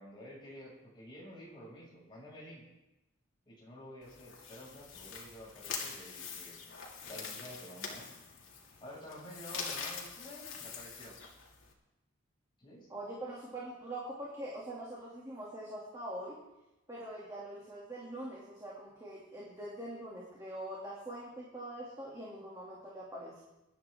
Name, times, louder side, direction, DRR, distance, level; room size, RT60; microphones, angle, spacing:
voice 1, 0.0-2.7 3.5-6.6 7.1-8.1 8.8-11.2 12.6-12.9, equal, 25° left, -6 dB, 6.2 m, -50 dB
sound 1, 4.0-11.7, left 5 dB, 70° left, 2.6 m, -44 dB
voice 2, 12.9-16.4 16.9-23.4, right 1 dB, 15° right, -6 dB, 2.6 m, -43 dB
22.5 x 11.0 x 3.7 m, 0.96 s
head